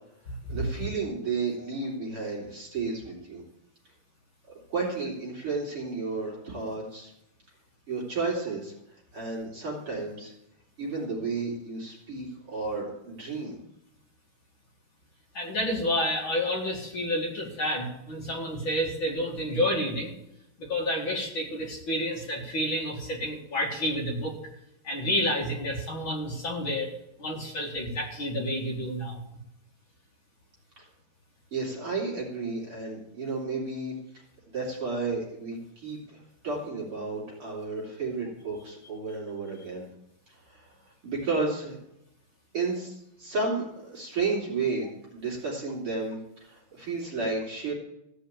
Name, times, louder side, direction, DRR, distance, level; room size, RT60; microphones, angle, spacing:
voice 1, 0.5-3.4 4.7-7.1 7.9-8.7 9.1-10.3 10.8-13.6 31.5-33.9 34.5-39.8 40.5-41.8 42.5-44.9 45.1-47.7, right 3 dB, 35° right, -4 dB, 3.5 m, -32 dB
voice 2, 15.3-20.1 20.6-24.4 24.8-26.9 27.2-29.2, equal, 40° left, -1 dB, 2.0 m, -29 dB
15.5 x 5.7 x 8.7 m, 0.81 s
omnidirectional pair, 4.6 m